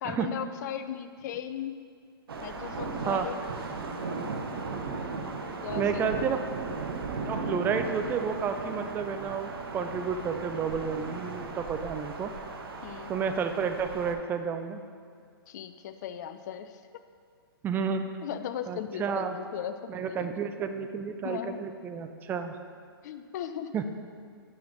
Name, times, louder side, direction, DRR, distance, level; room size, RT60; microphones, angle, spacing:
voice 1, 0.0-1.9 2.4-3.4 5.6-6.4 12.8-13.1 15.5-16.8 18.2-20.3 21.2-21.7 23.0-23.7, left 9 dB, 45° left, 10 dB, 0.4 m, -37 dB
sound 1, 2.3-14.1, right 3 dB, 65° right, 0.7 m, -36 dB
voice 2, 5.8-6.4 7.3-12.3 13.1-14.8 17.6-18.0 18.7-19.4 19.9-22.6 23.7-23.8, right 6 dB, 15° right, 7 dB, 0.4 m, -31 dB
5.7 x 5.6 x 5.2 m, 2.1 s
figure-of-eight pair, 120°, 13 cm